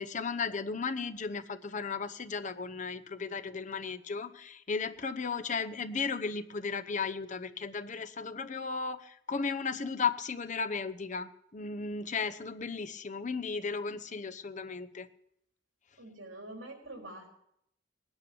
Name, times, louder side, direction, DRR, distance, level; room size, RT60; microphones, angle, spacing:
voice 1, 0.0-15.1, left 5 dB, 40° left, 9 dB, 0.9 m, -35 dB
voice 2, 16.0-17.3, right 1 dB, 75° right, 2 dB, 4.1 m, -45 dB
19.5 x 9.8 x 7.0 m, 0.73 s
head